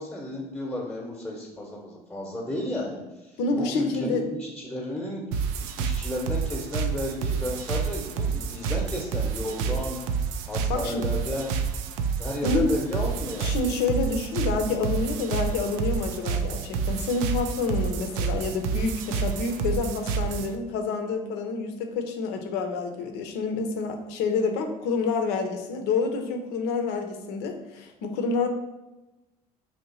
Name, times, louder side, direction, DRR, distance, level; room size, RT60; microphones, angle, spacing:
voice 1, 0.0-5.2 5.8-10.0 10.5-11.6 12.2-13.6, left 1 dB, 5° left, -2 dB, 1.0 m, -33 dB
voice 2, 3.4-4.2 10.7-11.0 12.4-12.7 13.4-28.5, left 4 dB, 55° left, 5 dB, 0.7 m, -28 dB
sound 1, 5.3-20.6, right 6 dB, 60° right, 0.4 m, -29 dB
3.2 x 2.8 x 4.2 m, 1.0 s
figure-of-eight pair, 60°, 20 cm